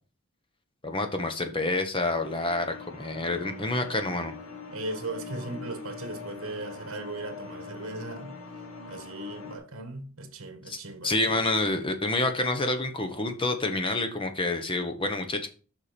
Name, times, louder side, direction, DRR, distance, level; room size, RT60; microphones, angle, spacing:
voice 1, 0.8-4.3 10.7-15.5, left 2 dB, 25° left, 1.1 m, -28 dB
sound 1, 2.2-9.6, left 4 dB, 70° left, 1.3 m, -42 dB
voice 2, 4.7-8.4 8.9-11.5, right 2 dB, 70° right, 1.5 m, -38 dB
7.1 x 5.9 x 5.1 m
head